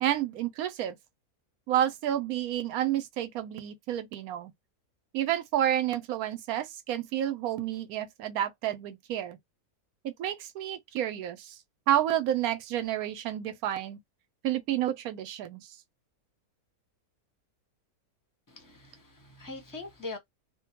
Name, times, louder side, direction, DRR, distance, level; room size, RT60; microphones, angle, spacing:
voice 1, 0.0-1.0 1.7-4.5 5.1-9.4 10.0-11.6 11.9-14.0 14.4-15.6, right 11 dB, 75° right, 1.0 m, -30 dB
voice 2, 18.5-20.2, left 3 dB, 20° left, 0.7 m, -42 dB
2.6 x 2.2 x 2.7 m
omnidirectional pair, 1.6 m